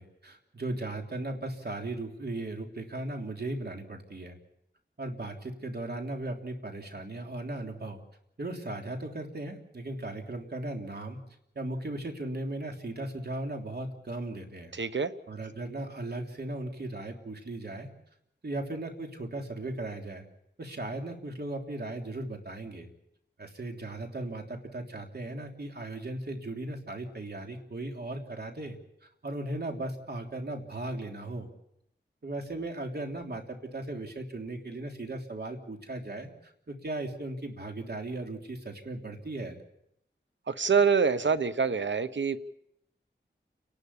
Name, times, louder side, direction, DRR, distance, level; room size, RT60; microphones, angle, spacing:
voice 1, 0.0-4.4 5.0-8.0 8.4-11.2 11.5-14.8 15.3-17.9 18.4-20.3 20.6-22.9 23.4-31.5 32.2-39.6, right 2 dB, 60° right, 3 dB, 3.4 m, -37 dB
voice 2, 14.8-15.1 40.5-42.4, right 5 dB, 75° right, 12 dB, 1.1 m, -25 dB
29.5 x 12.0 x 8.6 m, 0.76 s
wide cardioid pair, 65°, 19 cm